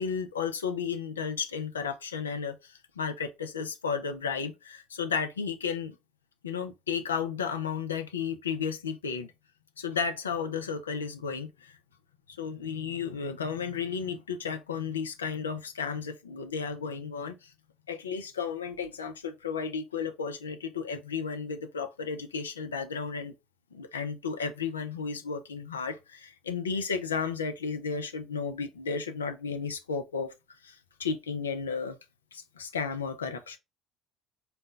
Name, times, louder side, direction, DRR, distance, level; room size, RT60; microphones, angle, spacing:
voice 1, 0.0-5.9 6.4-9.3 9.8-11.8 12.3-17.5 17.9-23.3 23.7-30.3 30.6-32.0 32.3-33.6, left 6 dB, 85° left, 0.4 m, -33 dB
4.1 x 2.2 x 3.7 m
hypercardioid pair, 60°, 0 cm